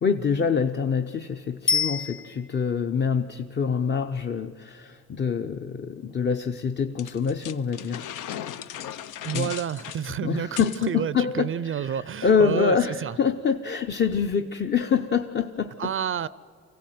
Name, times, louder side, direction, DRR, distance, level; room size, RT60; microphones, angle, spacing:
voice 1, 0.0-8.1 9.3-9.5 10.1-15.9, left 6 dB, 35° left, 0.7 m, -26 dB
Bicycle bell, 1.7-2.8 11.9-12.0, left 6 dB, 65° left, 1.6 m, -27 dB
sound 1, 7.0-10.9, left 10 dB, 85° left, 0.7 m, -37 dB
voice 2, 9.2-13.2 15.8-16.3, right 9 dB, 45° right, 0.5 m, -29 dB
25.0 x 16.0 x 9.3 m
cardioid pair, 90°, 30 cm